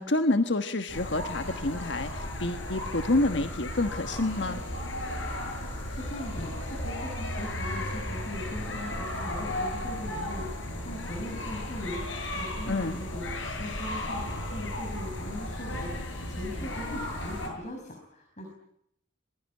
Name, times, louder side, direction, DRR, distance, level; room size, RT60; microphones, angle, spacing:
voice 1, 0.0-4.6 12.7-13.0, left 2 dB, 70° left, 8 dB, 1.4 m, -28 dB
sound 1, 0.9-17.5, left 1 dB, 85° left, 7.5 m, -35 dB
voice 2, 5.6-13.3 13.5-18.5, left 1 dB, 40° left, 3 dB, 5.6 m, -40 dB
26.5 x 21.5 x 9.8 m, 0.78 s
head